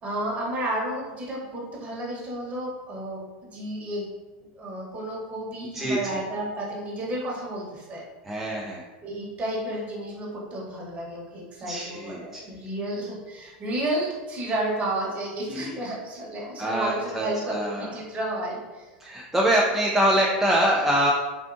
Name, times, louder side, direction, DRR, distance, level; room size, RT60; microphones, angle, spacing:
voice 1, 0.0-3.2 3.5-4.1 4.5-8.0 9.0-18.9, right 1 dB, 30° right, -3 dB, 1.0 m, -31 dB
voice 2, 5.6-6.2 8.2-8.8 11.6-12.4 15.5-15.7 16.6-17.9 19.0-21.1, right 1 dB, 5° right, -4 dB, 0.4 m, -24 dB
3.5 x 2.5 x 2.5 m, 1.2 s
hypercardioid pair, 110°, 5 cm